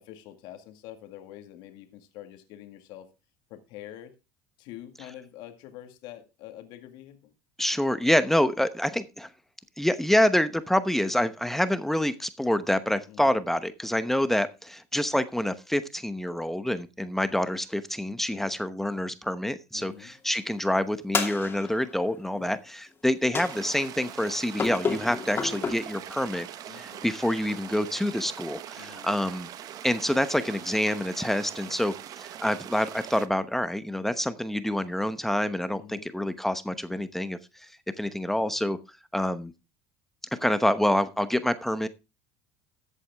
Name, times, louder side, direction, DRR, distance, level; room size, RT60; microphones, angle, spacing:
voice 1, 0.0-3.1 3.5-4.1 4.6-7.3 13.1-13.4 18.3-18.5 19.7-20.1 22.3-22.6 26.7-27.1 28.8-29.1 35.7-36.1, left 12 dB, 70° left, 1.9 m, -46 dB
voice 2, 7.6-9.3 9.8-29.5 29.8-37.7 38.0-38.8 39.1-39.5 40.3-41.9, left 1 dB, 5° left, 0.9 m, -27 dB
sound 1, 21.1-22.0 23.3-23.9 24.6-25.7, left 5 dB, 25° left, 2.7 m, -31 dB
sound 2, 23.4-33.3, right 11 dB, 50° right, 1.0 m, -42 dB
14.0 x 8.2 x 3.5 m
supercardioid pair, 110°, 8 cm